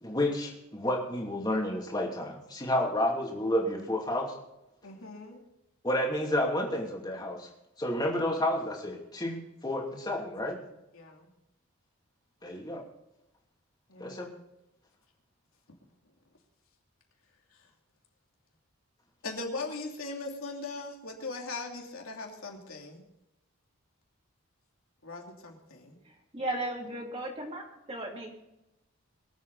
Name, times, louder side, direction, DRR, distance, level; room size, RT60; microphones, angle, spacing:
voice 1, 0.0-4.4 5.8-7.5 7.8-10.6 12.4-12.8 14.0-14.3, left 1 dB, 20° left, 0 dB, 2.6 m, -30 dB
voice 2, 4.8-5.4 10.4-10.5 10.9-11.3 13.9-14.4 19.2-23.0 25.0-26.0, left 3 dB, 75° left, 0 dB, 2.9 m, -40 dB
voice 3, 26.0-28.4, right 1 dB, 25° right, -1 dB, 2.9 m, -36 dB
24.0 x 8.2 x 4.1 m, 0.91 s
head